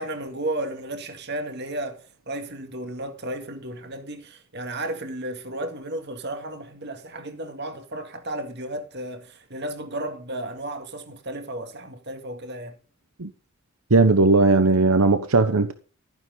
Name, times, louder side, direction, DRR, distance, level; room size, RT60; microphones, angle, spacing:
voice 1, 0.0-12.8, right 1 dB, 50° right, 2.1 m, -33 dB
voice 2, 13.9-15.7, right 3 dB, 90° right, 1.1 m, -17 dB
14.5 x 10.5 x 4.0 m
head